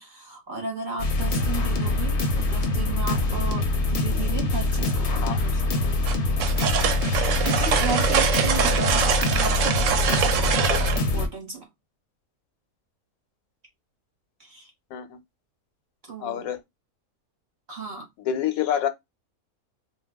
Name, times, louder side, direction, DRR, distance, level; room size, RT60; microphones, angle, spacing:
voice 1, 0.0-6.0 7.4-10.6 10.9-11.7 14.4-14.7 16.1-16.5 17.7-18.1, right 4 dB, 40° right, 0.8 m, -35 dB
sound 1, 1.0-11.3, left 2 dB, 50° left, 0.7 m, -24 dB
sound 2, 6.0-11.0, right 7 dB, 70° right, 0.9 m, -24 dB
voice 2, 16.2-16.6 18.2-18.9, left 9 dB, 85° left, 1.0 m, -27 dB
2.3 x 2.1 x 3.4 m
omnidirectional pair, 1.5 m